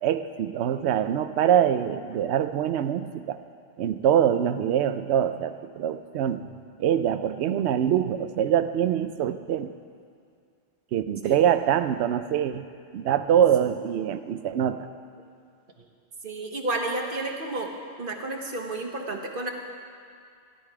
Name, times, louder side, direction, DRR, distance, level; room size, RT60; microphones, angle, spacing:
voice 1, 0.0-3.4 3.8-6.5 6.8-9.7 10.9-12.7 12.9-14.9, right 9 dB, 70° right, 10 dB, 0.8 m, -24 dB
voice 2, 16.2-17.7 18.0-19.5, right 2 dB, 50° right, 2 dB, 1.4 m, -31 dB
16.0 x 11.5 x 4.8 m, 2.3 s
omnidirectional pair, 1.2 m